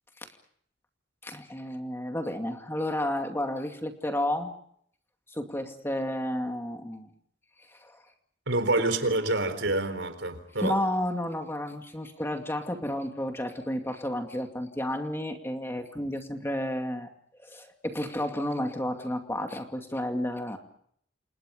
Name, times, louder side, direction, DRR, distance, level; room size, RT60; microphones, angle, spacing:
voice 1, 1.2-4.5 5.3-7.1 7.7-8.0 10.6-17.1 17.4-20.6, left 1 dB, 15° left, 2.4 m, -31 dB
voice 2, 8.5-10.8, right 2 dB, 80° right, 4.3 m, -27 dB
29.0 x 28.5 x 5.2 m
head